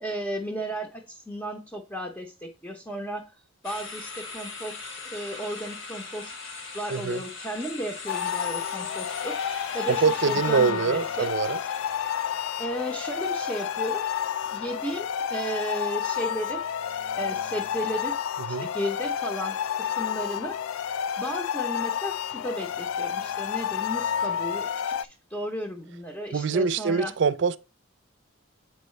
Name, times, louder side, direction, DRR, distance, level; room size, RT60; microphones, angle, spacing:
voice 1, 0.0-0.9 1.3-1.6 1.9-2.2 2.6-3.2 3.6-3.9 4.3-4.7 5.1-6.2 6.8-9.3 9.7-11.3 12.6-13.9 14.6-15.0 15.3-16.6 17.2-18.1 18.8-19.5 20.0-20.5 21.2-22.1 22.4-22.7 23.0-23.1 23.4-24.6 25.3-27.1, equal, 10° left, 0.7 m, -33 dB
sound 1, 3.6-14.7, left 4 dB, 65° left, 1.4 m, -41 dB
voice 2, 6.9-7.2 9.9-11.6 18.4-18.7 26.3-27.6, right 5 dB, 60° right, 0.4 m, -24 dB
sound 2, 8.1-25.1, left 8 dB, 85° left, 0.3 m, -30 dB
7.8 x 4.6 x 3.1 m
head